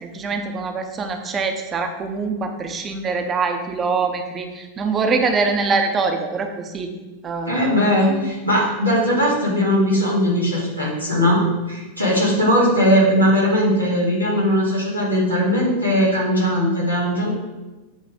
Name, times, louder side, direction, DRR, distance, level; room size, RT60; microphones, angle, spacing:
voice 1, 0.0-6.9 7.2-8.3, right 4 dB, 25° right, 5 dB, 0.7 m, -24 dB
voice 2, 7.5-11.4 11.7-17.3, equal, 90° left, -6 dB, 2.1 m, -19 dB
8.4 x 3.1 x 5.0 m, 1.1 s
figure-of-eight pair, 90°, 0 cm